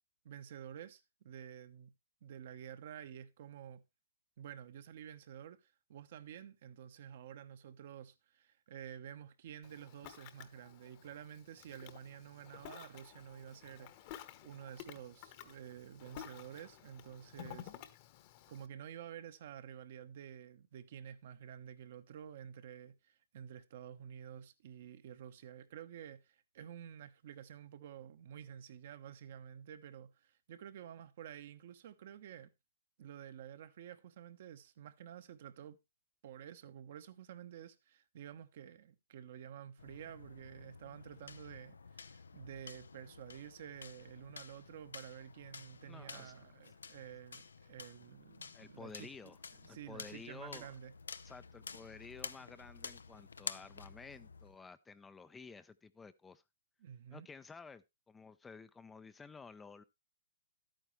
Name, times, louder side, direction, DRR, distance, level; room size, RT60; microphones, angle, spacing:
voice 1, 0.2-1.9 2.2-3.8 4.4-17.7 18.5-32.5 33.0-35.8 36.2-50.9 56.8-57.3, right 9 dB, 55° right, 1.0 m, -51 dB
Ocean, 9.6-18.7, left 11 dB, 40° left, 1.1 m, -53 dB
sound 1, 39.8-54.6, left 5 dB, 90° left, 0.6 m, -51 dB
voice 2, 45.8-46.5 48.5-49.4 49.7-50.7 51.2-56.4 57.1-59.8, left 4 dB, 10° left, 0.5 m, -53 dB
11.5 x 9.1 x 3.2 m
hypercardioid pair, 135°, 0 cm